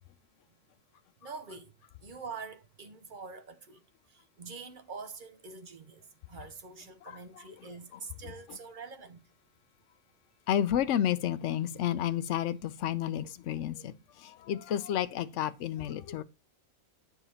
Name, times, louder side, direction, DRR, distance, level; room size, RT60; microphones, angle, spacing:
voice 1, 1.2-1.7 2.0-9.2, right 4 dB, 45° right, 0.7 m, -45 dB
voice 2, 10.5-13.9 14.2-16.2, left 10 dB, 65° left, 0.9 m, -31 dB
8.8 x 4.8 x 4.3 m
omnidirectional pair, 1.4 m